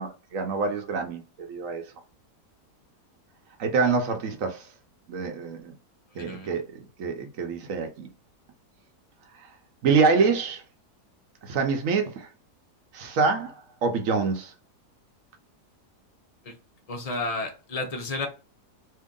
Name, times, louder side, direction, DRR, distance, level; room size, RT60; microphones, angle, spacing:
voice 1, 0.0-1.8 3.6-4.7 5.1-5.7 6.2-8.1 9.8-10.6 11.4-12.3 12.9-13.5 13.8-14.5, right 4 dB, 60° right, 1.0 m, -26 dB
voice 2, 6.1-6.6 16.4-16.5 16.9-18.3, left 3 dB, 40° left, 0.5 m, -32 dB
2.9 x 2.7 x 3.7 m
omnidirectional pair, 1.7 m